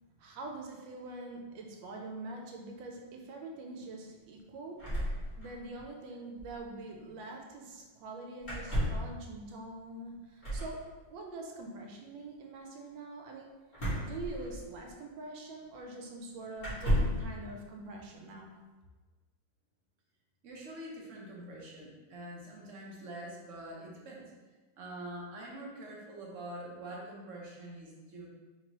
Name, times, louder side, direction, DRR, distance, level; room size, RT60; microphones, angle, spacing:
voice 1, 0.2-5.0 5.4-13.5 14.0-18.6, right 2 dB, 85° right, 1 dB, 1.3 m, -44 dB
sound 1, 4.8-5.9 6.1-6.2 6.4-6.6 8.4-9.1 10.4-10.8 13.7-14.9 15.8-15.9 16.6-17.3, equal, 30° left, 1.5 m, -33 dB
voice 2, 20.4-24.3 24.8-28.3, right 1 dB, 55° right, -3 dB, 1.0 m, -45 dB
4.4 x 2.9 x 2.9 m, 1.3 s
omnidirectional pair, 2.1 m